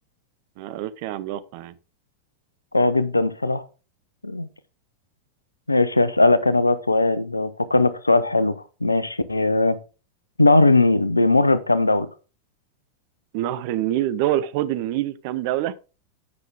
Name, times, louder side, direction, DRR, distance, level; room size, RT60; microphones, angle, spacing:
voice 1, 0.6-1.7 13.3-15.7, right 13 dB, 45° right, 0.8 m, -26 dB
voice 2, 2.7-3.6 4.2-4.5 5.7-9.8 10.4-12.1, left 2 dB, 80° left, 0.7 m, -19 dB
9.7 x 5.9 x 3.5 m
figure-of-eight pair, 90°, 0 cm